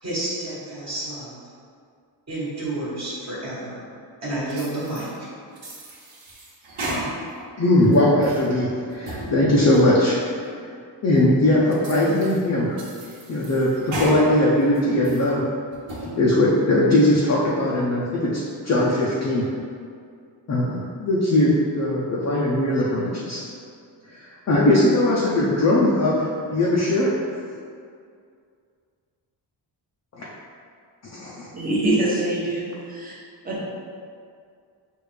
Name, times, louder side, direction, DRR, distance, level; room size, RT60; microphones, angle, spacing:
voice 1, 0.0-1.4 2.3-3.8 4.2-5.3, right 1 dB, 35° right, -9 dB, 1.3 m, -30 dB
sound 1, 4.5-5.1 5.6-7.4 7.8-8.5 8.9-9.3 9.7-9.8 10.4-10.5 11.2-11.3 11.7-12.4 12.8-14.2 14.6-15.3 15.7-16.1, right 1 dB, 80° right, 1.2 m, -34 dB
voice 2, 7.6-10.2 11.0-12.8 13.3-15.4 16.2-18.4 18.6-19.5 20.5-21.5 21.8-23.4 24.5-27.2 30.1-30.3 31.0-31.5, left 1 dB, 35° left, -6 dB, 0.5 m, -20 dB
voice 3, 31.5-33.1 33.4-33.6, right 1 dB, 20° right, -6 dB, 0.9 m, -24 dB
6.4 x 2.5 x 3.3 m, 2.3 s
wide cardioid pair, 160°, 45 cm